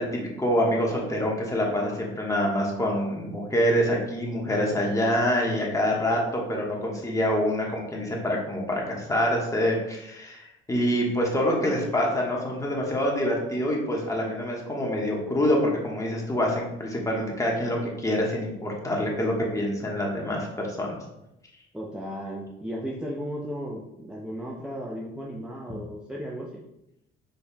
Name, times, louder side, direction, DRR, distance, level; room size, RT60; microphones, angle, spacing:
voice 1, 0.0-21.0, equal, 15° left, -2 dB, 1.3 m, -26 dB
voice 2, 21.7-26.6, equal, 5° right, -3 dB, 0.6 m, -35 dB
5.2 x 4.2 x 2.3 m, 0.85 s
cardioid pair, 90°, 21 cm